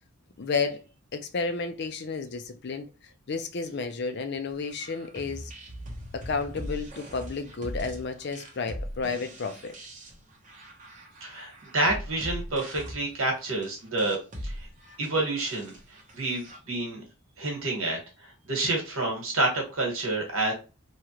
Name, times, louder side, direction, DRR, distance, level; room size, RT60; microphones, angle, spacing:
voice 1, 0.4-0.8 1.1-2.9 3.3-5.5 6.1-9.8, left 4 dB, 50° left, 0.5 m, -32 dB
sound 1, 4.6-16.6, equal, 35° right, 0.8 m, -41 dB
voice 2, 11.2-14.5 15.0-15.7 16.1-17.0 17.4-18.0 18.5-20.5, right 2 dB, 70° right, 1.3 m, -28 dB
3.1 x 2.4 x 2.9 m
head